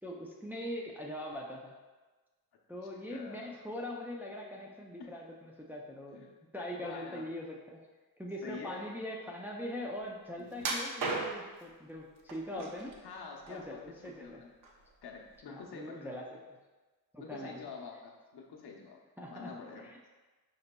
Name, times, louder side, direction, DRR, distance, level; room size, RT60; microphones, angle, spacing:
voice 1, 0.0-1.7 2.7-6.3 6.5-7.8 8.2-12.9 13.5-14.4 15.5-16.6 17.1-17.7 19.2-20.1, left 1 dB, 5° right, -2 dB, 0.3 m, -42 dB
voice 2, 3.1-3.6 5.0-5.1 6.1-6.3 6.7-7.3 8.4-8.9 10.4-10.6 12.5-12.7 13.0-14.5 15.0-16.1 17.2-19.0 19.3-19.9, left 5 dB, 80° left, 0 dB, 0.7 m, -47 dB
sound 1, 10.6-11.6 12.3-13.0 13.4-14.3 14.6-14.8 15.4-15.5, right 3 dB, 60° right, 0.6 m, -35 dB
5.0 x 4.0 x 2.2 m, 1.3 s
wide cardioid pair, 135°, 38 cm